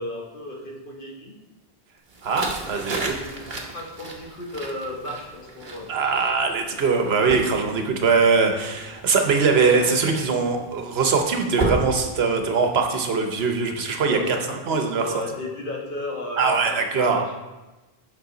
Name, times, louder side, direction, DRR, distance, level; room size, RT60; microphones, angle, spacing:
voice 1, 0.0-1.3 2.6-5.9 6.8-7.2 9.2-9.4 14.1-17.4, left 1 dB, 55° left, -1 dB, 1.4 m, -35 dB
sound 1, 2.1-12.8, right 2 dB, 50° right, 1.2 m, -34 dB
voice 2, 2.2-3.2 5.9-15.1 16.4-17.2, right 4 dB, 75° right, 4 dB, 1.1 m, -22 dB
8.3 x 5.6 x 3.8 m, 1.1 s
omnidirectional pair, 1.1 m